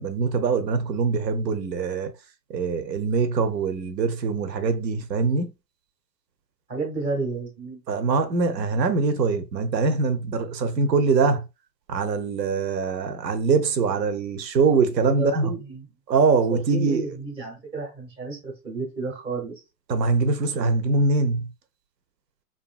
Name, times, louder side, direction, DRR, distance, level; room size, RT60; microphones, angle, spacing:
voice 1, 0.0-2.1 2.5-5.5 7.9-11.4 11.9-15.5 16.1-17.0 19.9-21.5, right 4 dB, 90° right, 0.6 m, -23 dB
voice 2, 6.7-7.8 15.2-15.9 16.5-19.5, right 4 dB, 10° right, 0.5 m, -31 dB
2.6 x 2.6 x 2.3 m
hypercardioid pair, 120°, 49 cm